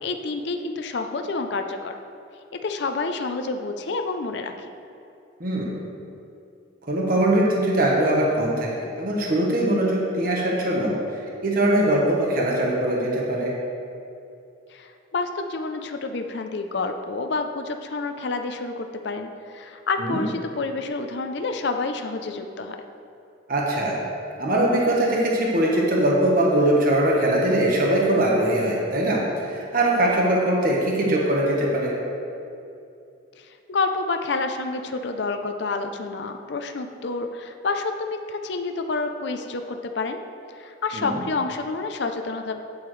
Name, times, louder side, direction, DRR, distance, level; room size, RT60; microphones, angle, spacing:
voice 1, 0.0-1.9 2.5-4.7 14.7-22.8 33.4-40.2 40.5-42.6, left 3 dB, 55° left, 6 dB, 0.5 m, -29 dB
voice 2, 5.4-5.8 6.9-11.2 11.4-13.5 20.0-20.2 23.5-24.0 24.4-31.9 40.9-41.2, right 1 dB, 45° right, -3 dB, 1.2 m, -21 dB
8.7 x 8.4 x 3.2 m, 2.6 s
head